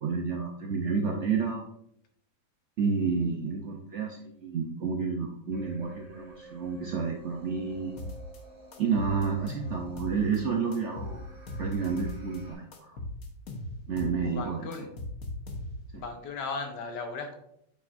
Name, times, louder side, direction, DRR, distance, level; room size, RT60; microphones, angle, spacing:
voice 1, 0.0-1.6 2.8-7.9 8.8-11.2 11.6-13.0 13.9-14.7 15.9-16.0, right 5 dB, 60° right, 2 dB, 0.7 m, -30 dB
sound 1, 5.5-12.5, right 1 dB, 35° right, 1.4 m, -51 dB
sound 2, 8.0-8.4 8.7-10.4 10.7-12.4 12.7-14.2 14.5-16.0, left 1 dB, 60° left, 1.4 m, -39 dB
voice 2, 14.1-14.9 15.9-17.3, left 4 dB, 75° left, 4 dB, 1.6 m, -36 dB
8.3 x 6.0 x 2.5 m, 0.72 s
omnidirectional pair, 1.9 m